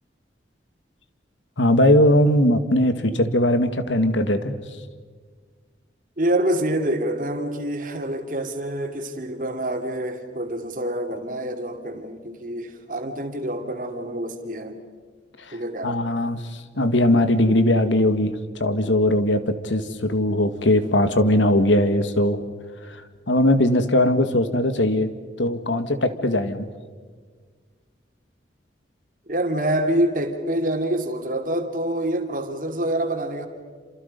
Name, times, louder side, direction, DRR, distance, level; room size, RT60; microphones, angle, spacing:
voice 1, 1.6-4.6 15.4-15.6 15.8-22.4 22.8-23.0 23.3-25.1 25.4-26.7, left 1 dB, 90° left, 9 dB, 1.9 m, -20 dB
voice 2, 6.2-14.8 15.5-16.0 29.3-33.5, right 1 dB, 45° right, 5 dB, 2.7 m, -26 dB
28.0 x 27.5 x 5.4 m, 1.6 s
head